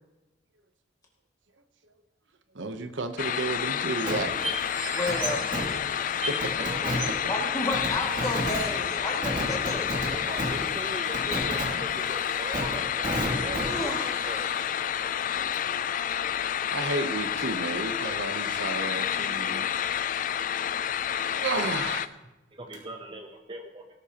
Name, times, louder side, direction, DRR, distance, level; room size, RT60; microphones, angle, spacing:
voice 1, 2.5-4.7 6.3-6.5 16.7-20.2 21.1-22.1, right 3 dB, 85° right, 9 dB, 0.9 m, -32 dB
sound 1, 3.2-22.1, left 9 dB, 45° left, 0.3 m, -29 dB
Fireworks, 4.1-15.7 16.0-16.1 22.7-22.8, equal, 45° right, 2.7 m, -34 dB
sound 2, 4.4-6.6 7.0-7.2 8.0-8.1, right 1 dB, 10° right, 3.9 m, -36 dB
voice 2, 4.9-5.4 7.3-9.9 13.7-14.1, left 2 dB, 20° left, -1 dB, 2.2 m, -31 dB
voice 3, 6.6-6.9 10.1-14.5 21.1-21.4 22.5-23.9, right 1 dB, 30° right, 4 dB, 0.8 m, -40 dB
18.0 x 11.5 x 2.9 m, 1.0 s
head